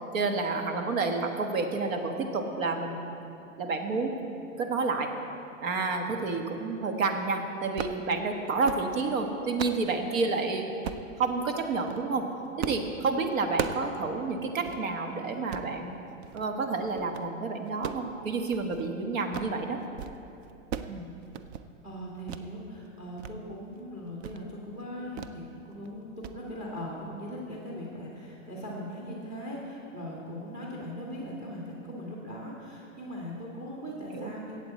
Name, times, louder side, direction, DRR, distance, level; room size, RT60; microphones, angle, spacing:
voice 1, 0.1-3.1 3.6-4.1 4.6-5.1 5.6-10.7 11.2-12.2 12.7-16.0 16.3-19.8 20.9-21.1 34.1-34.3, right 3 dB, 75° right, 5 dB, 1.4 m, -29 dB
sound 1, 7.6-8.0 8.5-8.9 9.3-9.8 10.8-11.1 11.7-12.0 12.6-12.9 13.2-13.9 14.2-14.3 14.6-14.8 15.3-15.7 16.2-16.5 16.9-17.3 17.7-18.9 19.2-19.6 19.8-20.2 20.4-21.0 21.2-21.7 22.3-22.5 22.9-23.3 23.7-23.8 24.2-24.4 25.2-25.4 25.7-25.9 26.2-26.4, right 8 dB, 55° right, 0.6 m, -37 dB
voice 2, 21.8-34.6, equal, 20° right, -4 dB, 1.9 m, -39 dB
16.0 x 8.1 x 4.2 m, 2.8 s
hypercardioid pair, 130°, 40 cm